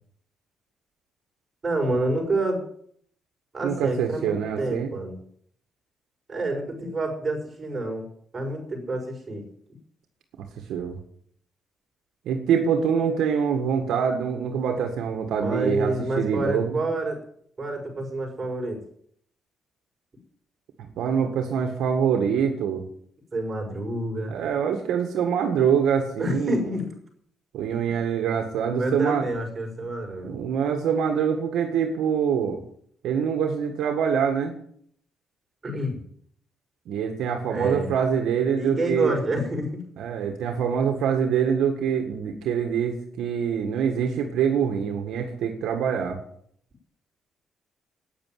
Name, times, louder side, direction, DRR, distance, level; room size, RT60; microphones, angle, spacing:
voice 1, 1.6-2.6 3.5-5.2 6.3-8.1 8.3-9.4 15.4-17.2 17.6-18.8 23.3-24.4 26.2-26.9 28.7-30.3 35.6-36.0 37.5-37.9 38.6-39.8, right 2 dB, 30° right, 1 dB, 6.0 m, -28 dB
voice 2, 3.6-4.9 10.7-11.0 12.3-16.8 20.8-22.8 24.3-26.6 27.5-29.3 30.2-32.6 33.0-34.5 36.9-39.2 40.0-46.2, right 7 dB, 80° right, 4 dB, 1.9 m, -25 dB
9.7 x 9.1 x 9.5 m, 0.64 s
cardioid pair, 90°, 0 cm